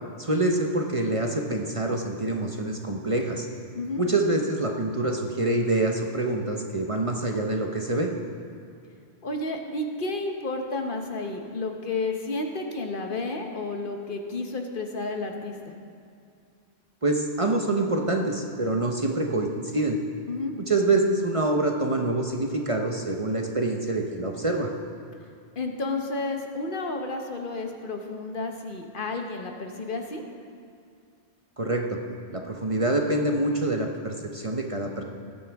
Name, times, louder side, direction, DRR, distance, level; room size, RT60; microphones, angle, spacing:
voice 1, 0.2-3.5 4.0-8.1 17.0-20.0 20.7-24.7 31.6-32.0 32.3-35.0, right 2 dB, 35° right, 2 dB, 0.8 m, -26 dB
voice 2, 9.2-15.7 20.3-20.5 25.6-30.2, left 2 dB, 50° left, 3 dB, 1.2 m, -31 dB
20.0 x 9.6 x 3.5 m, 2.4 s
omnidirectional pair, 1.1 m